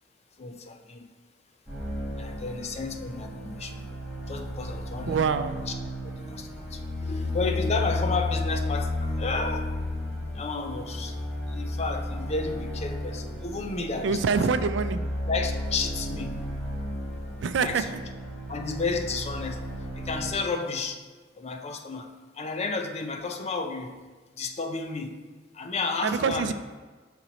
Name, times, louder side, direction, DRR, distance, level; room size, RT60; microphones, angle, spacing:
voice 1, 0.4-1.1 2.2-3.9 4.3-5.2 5.6-5.7 6.2-9.7 10.3-11.2 11.5-14.4 15.3-16.4 17.6-17.9 18.5-19.6 19.9-21.0 21.4-24.0 24.3-25.2 25.5-26.5, left 4 dB, 35° left, 5 dB, 0.5 m, -32 dB
sound 1, 1.7-20.3, left 1 dB, ahead, 1.8 m, -33 dB
voice 2, 5.1-5.6 14.0-15.0 17.4-18.0 26.0-26.5, right 5 dB, 75° right, 10 dB, 0.4 m, -25 dB
6.0 x 4.3 x 3.9 m, 1.4 s
head